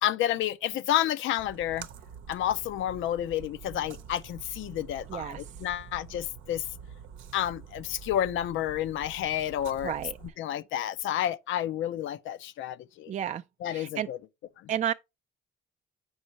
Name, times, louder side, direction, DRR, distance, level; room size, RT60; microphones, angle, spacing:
voice 1, 0.0-1.9 2.3-6.6 7.3-9.9 10.4-13.1 13.6-14.2, left 12 dB, 80° left, 0.5 m, -30 dB
Splash splatter, 1.4-10.3, right 7 dB, 90° right, 0.7 m, -46 dB
voice 2, 5.1-5.4 9.8-10.2 13.1-13.4 13.7-14.1 14.7-14.9, right 9 dB, 40° right, 0.4 m, -31 dB
7.9 x 5.3 x 2.9 m
cardioid pair, 90°, 20 cm